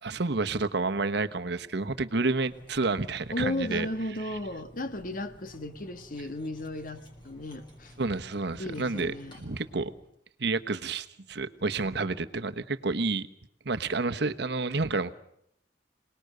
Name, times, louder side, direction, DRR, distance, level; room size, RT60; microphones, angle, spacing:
voice 1, 0.0-3.9 8.0-9.9 10.4-13.3 13.6-15.1, right 3 dB, 65° right, 10 dB, 1.1 m, -29 dB
Cutlery silverware, 2.4-10.1, equal, 25° left, 5.6 m, -53 dB
voice 2, 3.3-7.9 8.6-9.4, left 2 dB, 50° left, 10 dB, 1.4 m, -35 dB
26.5 x 19.5 x 6.7 m, 0.73 s
head